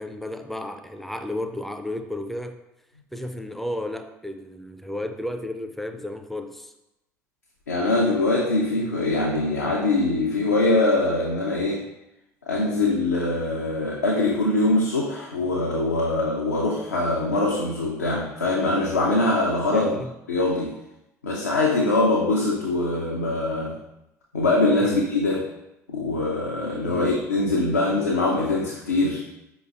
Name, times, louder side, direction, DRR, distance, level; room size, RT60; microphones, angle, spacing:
voice 1, 0.0-2.6 3.1-6.7 19.7-20.1 24.8-25.0 26.9-27.1, left 1 dB, ahead, 7 dB, 0.3 m, -33 dB
voice 2, 7.7-11.8 12.5-19.9 20.3-20.8 21.2-23.8 24.3-25.5 25.9-29.2, left 2 dB, 85° left, -3 dB, 0.4 m, -23 dB
5.0 x 2.9 x 2.4 m, 0.92 s
figure-of-eight pair, 60°, 9 cm